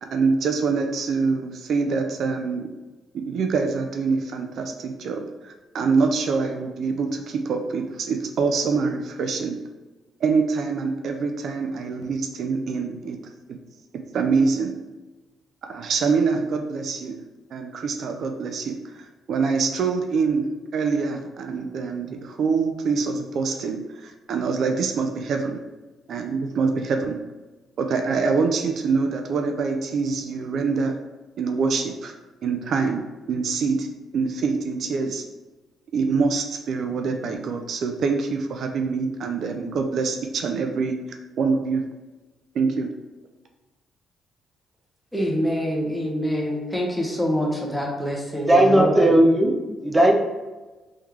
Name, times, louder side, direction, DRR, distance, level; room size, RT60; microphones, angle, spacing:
voice 1, 0.0-2.7 3.1-9.6 10.2-13.2 14.1-14.8 15.6-17.2 17.5-25.6 26.1-27.2 27.8-30.9 31.4-32.1 32.4-33.9 34.1-35.2 35.9-41.8 42.5-42.9, right 4 dB, 65° right, 5 dB, 0.4 m, -25 dB
voice 2, 45.1-49.1, equal, 5° left, -1 dB, 1.0 m, -25 dB
voice 3, 48.3-50.1, right 1 dB, 15° right, 2 dB, 0.7 m, -17 dB
3.5 x 3.1 x 3.3 m, 1.2 s
cardioid pair, 90°, 0 cm